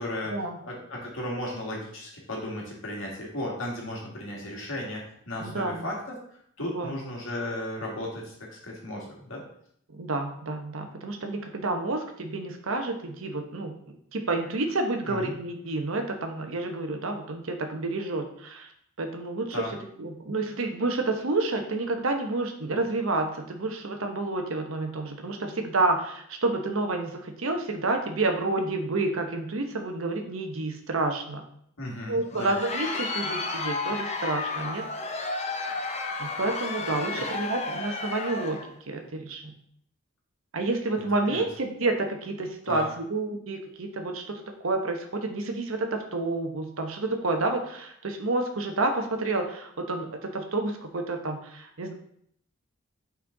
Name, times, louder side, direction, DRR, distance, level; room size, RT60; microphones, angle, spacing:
voice 1, 0.0-0.3 0.6-6.0 6.6-9.4 15.0-15.4 19.5-19.7 31.8-32.5 37.1-37.3 41.0-41.5 42.7-42.9, left 1 dB, 80° left, -2 dB, 1.9 m, -35 dB
voice 2, 5.4-5.9 6.6-6.9 9.9-13.7 14.1-18.7 19.0-19.6 20.0-31.4 32.1-34.8 36.2-39.6 40.5-51.9, right 2 dB, 90° right, 5 dB, 0.9 m, -29 dB
Crowd, 32.1-38.7, left 3 dB, 30° left, 0.6 m, -32 dB
5.8 x 4.4 x 3.8 m, 0.68 s
head